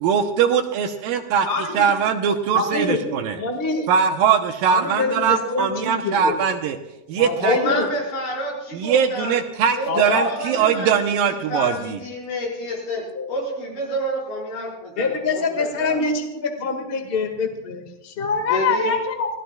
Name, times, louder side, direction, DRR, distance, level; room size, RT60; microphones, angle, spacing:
voice 1, 0.0-3.4 3.9-6.8 7.1-7.6 8.7-12.0, right 7 dB, 75° right, 5 dB, 2.4 m, -21 dB
voice 2, 1.4-2.0 2.5-3.0 3.4-3.9 4.7-6.4 7.2-7.9 9.8-10.3 13.1-13.3 15.0-19.3, left 4 dB, 50° left, 4 dB, 0.6 m, -25 dB
voice 3, 7.4-9.4 9.7-10.9 11.3-16.0 18.5-18.9, equal, 75° left, -3 dB, 7.0 m, -28 dB
27.5 x 17.0 x 2.3 m, 0.95 s
omnidirectional pair, 4.4 m